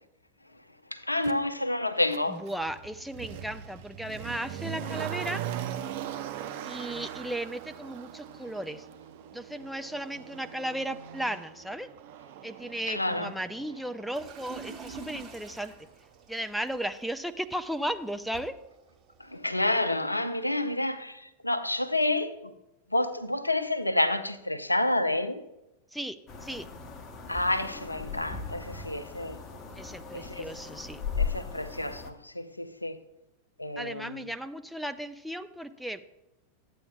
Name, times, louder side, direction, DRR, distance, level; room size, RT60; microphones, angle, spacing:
voice 1, 0.9-2.4 12.9-13.3 19.2-22.5 22.9-25.4 27.3-29.4 30.1-30.5 31.2-33.0 33.6-34.2, left 1 dB, 85° left, 0.5 m, -29 dB
Motor vehicle (road), 1.2-1.4 2.1-15.0 15.3-15.4, right 10 dB, 50° right, 0.6 m, -40 dB
voice 2, 2.3-5.4 6.6-8.9 9.3-11.9 12.4-15.7 16.3-18.5 25.9-26.7 29.8-31.0 33.8-36.1, right 1 dB, ahead, 0.4 m, -35 dB
sound 1, 14.1-19.7, right 6 dB, 25° right, 2.8 m, -48 dB
sound 2, 26.3-32.1, left 6 dB, 25° left, 0.9 m, -37 dB
13.5 x 8.4 x 2.3 m
figure-of-eight pair, 90°, 0 cm